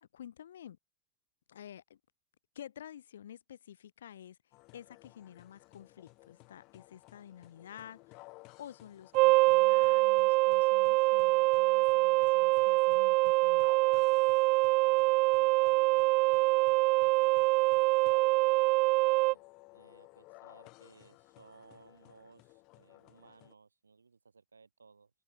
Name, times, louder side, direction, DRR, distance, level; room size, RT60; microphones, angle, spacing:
voice 1, 0.1-0.8 1.5-2.0 2.5-4.4 4.7-13.7, left 10 dB, 65° left, 3.1 m, -51 dB
sound 1, 4.5-23.5, left 25 dB, 40° left, 5.9 m, -57 dB
sound 2, 9.1-19.3, right 24 dB, 40° right, 0.4 m, -25 dB
voice 2, 15.4-17.7 18.0-19.4 19.7-25.1, right 5 dB, 75° right, 6.7 m, -59 dB
figure-of-eight pair, 90°, 0 cm